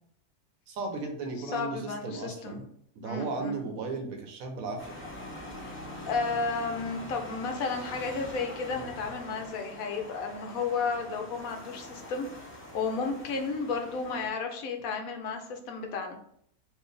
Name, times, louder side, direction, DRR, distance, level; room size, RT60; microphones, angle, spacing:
voice 1, 0.7-2.7 2.9-5.0, right 3 dB, 70° right, 2 dB, 1.2 m, -35 dB
voice 2, 1.5-2.6 3.0-3.6 5.6-5.8 6.1-12.3 12.7-16.2, left 4 dB, 70° left, 4 dB, 1.0 m, -33 dB
sound 1, 4.8-14.3, left 1 dB, 15° left, 0.4 m, -44 dB
4.7 x 2.6 x 3.2 m, 0.66 s
omnidirectional pair, 1.6 m